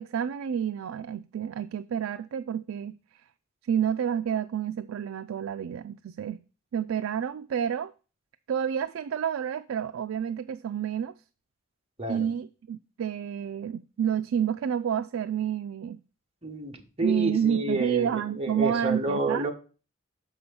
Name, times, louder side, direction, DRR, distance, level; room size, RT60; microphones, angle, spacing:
voice 1, 0.0-3.0 3.6-6.4 6.7-7.9 8.5-11.1 12.1-16.0 17.0-19.5, right 8 dB, 80° right, 0.3 m, -29 dB
voice 2, 12.0-12.3 16.4-19.5, right 2 dB, 30° right, 1.4 m, -30 dB
5.9 x 5.6 x 6.9 m
head